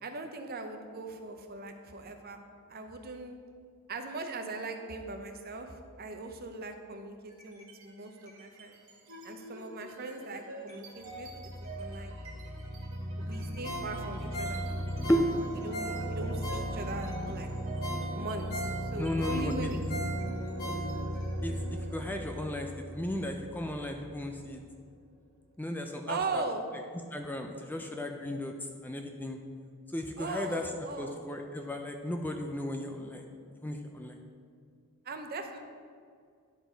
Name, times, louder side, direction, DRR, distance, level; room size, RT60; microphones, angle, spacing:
voice 1, 0.0-2.4 2.7-3.4 3.9-8.8 9.2-11.3 11.6-12.2 13.1-14.6 15.0-15.1 15.6-17.5 18.1-19.8 26.1-26.6 30.2-31.2 35.0-35.6, right 3 dB, 45° right, 5 dB, 0.7 m, -39 dB
sound 1, 7.3-7.8 8.2-24.8, equal, 65° right, 1.7 m, -38 dB
Ringtone, 13.6-17.1 17.5-17.6 17.8-21.3 21.7-21.8, right 1 dB, 45° left, 1.5 m, -39 dB
voice 2, 19.0-19.5 21.4-21.5 21.9-24.6 25.6-26.4 27.1-28.5 28.8-29.4 29.9-30.7 31.0-34.2, equal, 10° left, 4 dB, 0.4 m, -34 dB
10.5 x 4.6 x 4.5 m, 2.1 s
head